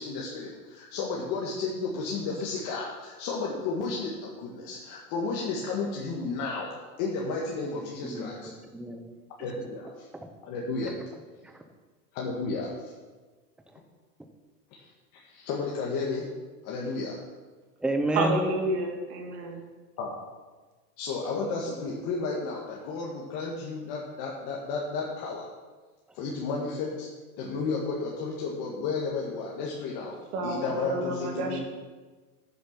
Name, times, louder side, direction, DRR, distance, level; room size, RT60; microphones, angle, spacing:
voice 1, 0.0-6.7 7.0-8.4 9.4-10.1 10.4-11.0 12.1-12.7 14.7-14.8 15.2-16.3 16.6-17.2 20.0-20.1 21.0-25.5 26.1-27.1 27.4-30.1 30.4-31.6, left 4 dB, 45° left, -3 dB, 1.8 m, -32 dB
voice 2, 8.0-9.1 11.4-11.6 17.8-18.4, right 1 dB, ahead, 4 dB, 0.7 m, -30 dB
voice 3, 18.2-19.6 30.3-31.6, right 2 dB, 70° right, 1 dB, 2.5 m, -30 dB
9.4 x 7.1 x 6.0 m, 1.3 s
hypercardioid pair, 130°, 47 cm